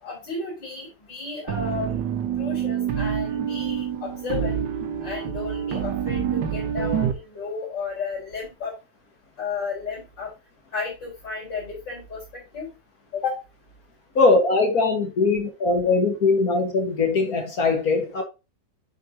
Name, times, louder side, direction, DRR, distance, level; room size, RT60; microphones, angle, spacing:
voice 1, 0.0-2.0 2.4-4.6 5.0-8.8 9.4-10.3 10.7-12.7 13.1-13.4, left 5 dB, 85° left, 5.4 m, -33 dB
sound 1, 1.5-7.1, right 8 dB, 85° right, 1.7 m, -27 dB
voice 2, 14.2-18.2, left 3 dB, 55° left, 2.0 m, -21 dB
9.3 x 6.5 x 2.8 m
omnidirectional pair, 1.9 m